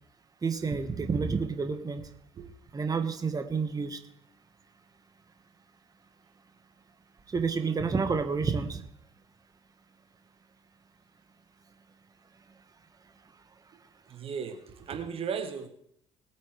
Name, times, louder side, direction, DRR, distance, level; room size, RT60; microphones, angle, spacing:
voice 1, 0.4-2.0 2.7-4.0 7.3-8.8, right 5 dB, 30° right, 7 dB, 1.4 m, -29 dB
voice 2, 14.1-15.7, right 6 dB, 50° right, 7 dB, 1.3 m, -36 dB
20.0 x 9.2 x 3.3 m, 0.68 s
hypercardioid pair, 55°, 13 cm